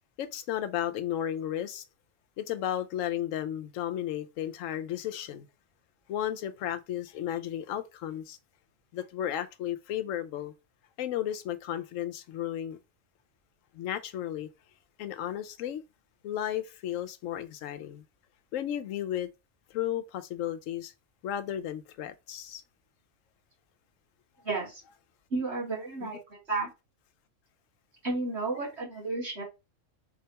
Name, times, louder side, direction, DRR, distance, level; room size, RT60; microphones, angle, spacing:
voice 1, 0.2-1.8 2.4-5.5 6.1-8.4 8.9-10.5 11.0-12.8 13.7-14.5 15.0-15.8 16.2-18.0 18.5-19.3 19.7-20.9 21.2-22.6 26.0-26.1, left 11 dB, 80° left, 1.0 m, -34 dB
voice 2, 24.4-24.8 25.3-26.7 28.0-29.4, right 3 dB, 55° right, 2.3 m, -32 dB
4.1 x 3.3 x 2.9 m
omnidirectional pair, 1.3 m